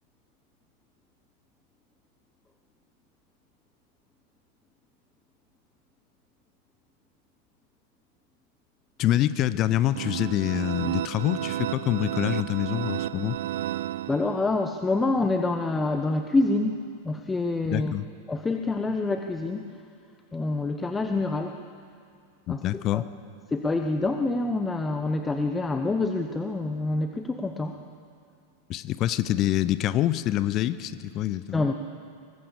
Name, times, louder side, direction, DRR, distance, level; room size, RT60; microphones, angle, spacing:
voice 1, 9.0-13.4 17.7-18.1 22.5-23.0 28.7-31.6, left 13 dB, 35° left, 15 dB, 0.8 m, -26 dB
sound 1, 9.9-14.7, right 13 dB, 55° right, 0.5 m, -32 dB
voice 2, 14.1-17.9 18.3-19.8 20.3-21.6 22.5-23.0 23.5-27.8 31.5-31.7, left 2 dB, 10° left, 6 dB, 1.0 m, -27 dB
23.5 x 20.0 x 7.1 m, 2.3 s
figure-of-eight pair, 90°, 0 cm